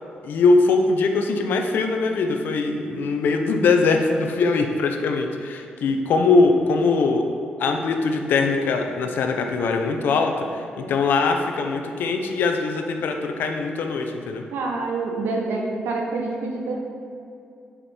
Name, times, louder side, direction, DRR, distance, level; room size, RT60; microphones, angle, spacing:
voice 1, 0.2-7.2 7.6-14.4, left 3 dB, 75° left, 4 dB, 0.7 m, -21 dB
voice 2, 14.5-16.8, right 3 dB, 85° right, 1 dB, 1.1 m, -27 dB
7.3 x 5.2 x 4.3 m, 2.5 s
cardioid pair, 80°, 3 cm